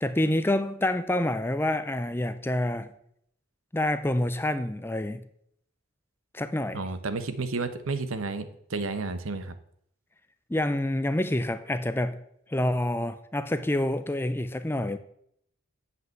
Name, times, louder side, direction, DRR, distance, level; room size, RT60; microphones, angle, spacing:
voice 1, 0.0-2.9 3.7-5.2 6.3-6.8 10.5-12.2 12.5-15.0, left 1 dB, 10° left, 0.5 m, -27 dB
voice 2, 6.7-9.5, right 3 dB, 85° right, 1.0 m, -31 dB
8.0 x 5.6 x 7.6 m
head